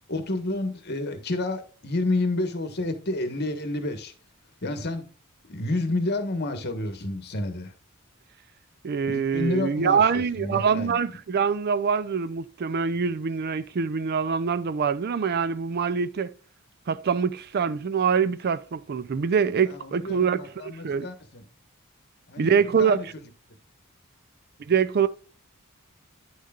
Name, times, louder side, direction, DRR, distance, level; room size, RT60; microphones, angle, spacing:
voice 1, 0.1-4.1 4.6-5.0 5.5-7.7 9.1-11.2 19.7-21.4 22.3-23.0, left 2 dB, 50° left, 1.4 m, -30 dB
voice 2, 8.8-16.3 16.9-21.1 22.4-23.1 24.7-25.1, right 6 dB, 50° right, 0.4 m, -24 dB
9.7 x 6.5 x 2.4 m
head